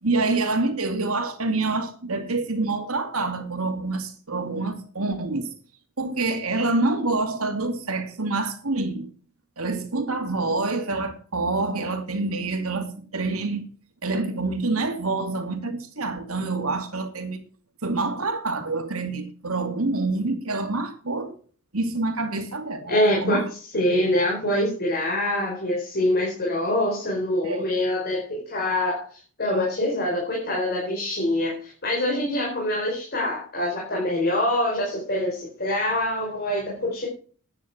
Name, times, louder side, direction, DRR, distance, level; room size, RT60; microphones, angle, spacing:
voice 1, 0.0-5.5 6.0-9.1 9.6-13.6 14.0-17.4 17.8-21.3 21.7-22.9 23.2-23.4 27.4-27.7, right 3 dB, 85° right, 2.6 m, -26 dB
voice 2, 22.9-23.5 23.7-37.1, left 1 dB, 50° left, 4.7 m, -25 dB
11.0 x 9.3 x 6.0 m
head